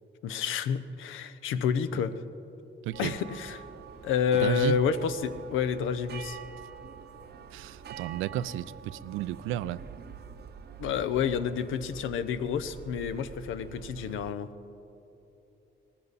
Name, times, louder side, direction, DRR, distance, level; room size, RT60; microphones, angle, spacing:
voice 1, 0.2-2.1 3.0-3.6 4.0-6.4 10.8-14.5, left 7 dB, 85° left, 12 dB, 0.7 m, -29 dB
voice 2, 2.8-3.1 4.3-4.8 7.5-9.8, right 13 dB, 90° right, 17 dB, 0.4 m, -33 dB
sound 1, 2.9-14.3, right 7 dB, 55° right, 0.7 m, -46 dB
18.5 x 14.5 x 4.1 m, 3.0 s
cardioid pair, 90°, 20 cm